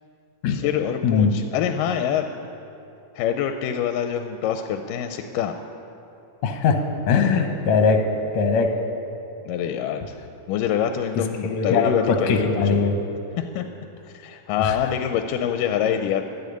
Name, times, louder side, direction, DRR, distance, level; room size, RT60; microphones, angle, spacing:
voice 1, 0.5-2.3 3.2-5.6 9.5-10.1 10.5-12.9 13.4-13.6 14.1-16.2, left 9 dB, 85° left, 7 dB, 2.2 m, -25 dB
voice 2, 1.0-1.4 6.4-6.8 7.1-8.0 8.3-8.7 11.4-13.0 14.6-14.8, left 5 dB, 70° left, 4 dB, 1.9 m, -20 dB
12.0 x 9.3 x 9.7 m, 2.8 s
omnidirectional pair, 3.8 m